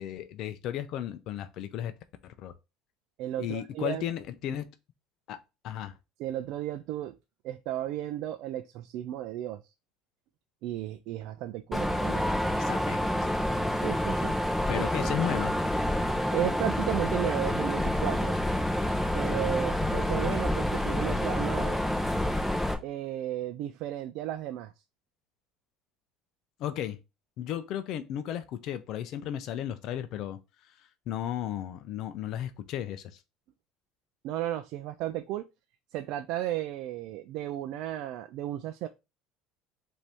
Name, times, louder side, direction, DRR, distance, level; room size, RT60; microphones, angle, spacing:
voice 1, 0.0-1.9 2.2-2.5 3.4-4.7 5.3-5.4 5.6-5.9 12.6-13.1 14.7-15.5 26.6-27.0 27.4-30.4 31.1-33.2, left 11 dB, 60° left, 0.5 m, -34 dB
voice 2, 3.2-4.0 6.2-7.2 7.4-9.7 10.6-12.2 13.7-14.4 14.7-14.8 15.2-15.3 16.3-18.4 19.1-21.8 22.8-24.7 34.2-35.5 35.9-38.9, right 13 dB, 70° right, 0.4 m, -34 dB
Mechanisms, 11.7-22.7, left 1 dB, 5° left, 0.9 m, -28 dB
5.1 x 2.7 x 3.4 m
supercardioid pair, 110°, 0 cm